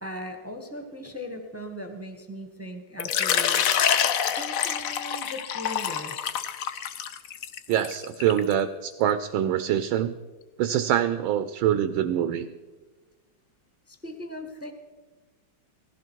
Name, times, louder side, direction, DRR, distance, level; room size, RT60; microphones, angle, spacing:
voice 1, 0.0-3.8 4.3-6.4 13.9-14.7, left 1 dB, 10° right, 5 dB, 1.0 m, -39 dB
Water / Liquid, 3.0-8.5, left 8 dB, 65° left, 0.9 m, -26 dB
voice 2, 7.7-10.1 10.6-12.5, right 10 dB, 75° right, 11 dB, 1.4 m, -24 dB
18.5 x 15.5 x 4.6 m, 1.3 s
omnidirectional pair, 2.3 m